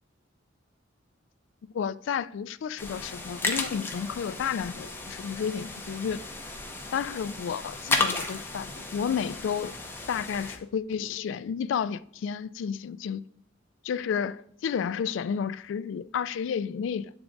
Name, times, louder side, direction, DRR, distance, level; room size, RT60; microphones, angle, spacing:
voice 1, 1.7-6.2 6.9-9.7 10.1-13.2 13.8-17.1, left 7 dB, 75° left, 0.3 m, -31 dB
sound 1, 2.8-10.6, left 3 dB, 10° left, 0.8 m, -34 dB
8.0 x 3.6 x 3.8 m
head